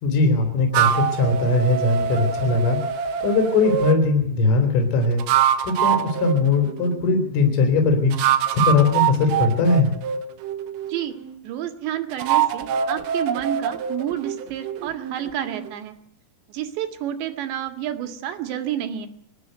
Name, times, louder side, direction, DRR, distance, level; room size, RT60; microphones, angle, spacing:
voice 1, 0.0-2.8 3.2-5.2 5.6-8.1 8.5-9.9, left 3 dB, 85° left, 4 dB, 5.9 m, -20 dB
sound 1, 0.7-4.0 5.0-7.2 8.1-11.4 12.1-15.7, right 9 dB, 90° right, 4.1 m, -24 dB
voice 2, 11.4-16.0 16.5-19.1, right 11 dB, 65° right, 7 dB, 4.0 m, -29 dB
24.0 x 13.5 x 9.3 m, 0.69 s
omnidirectional pair, 5.7 m